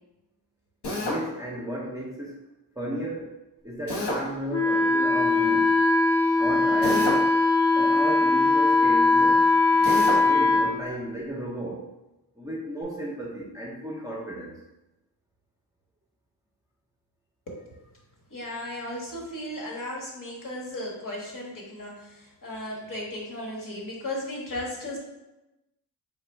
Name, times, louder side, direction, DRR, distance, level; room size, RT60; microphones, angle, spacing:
Drill, 0.8-1.2 3.9-4.2 6.8-7.3 9.8-10.2, left 1 dB, 70° left, 1.0 m, -28 dB
voice 1, 1.0-2.4 2.8-3.4 3.6-5.7 6.4-7.3 7.7-9.5 9.7-11.9 12.4-14.6, equal, 10° right, -4 dB, 0.6 m, -34 dB
Wind instrument woodwind instrument, 4.5-10.7, left 3 dB, 30° left, 0.8 m, -20 dB
voice 2, 17.5-17.8 18.3-25.0, left 1 dB, 50° left, -2 dB, 1.4 m, -36 dB
3.8 x 2.5 x 4.4 m, 0.98 s
wide cardioid pair, 95°, 42 cm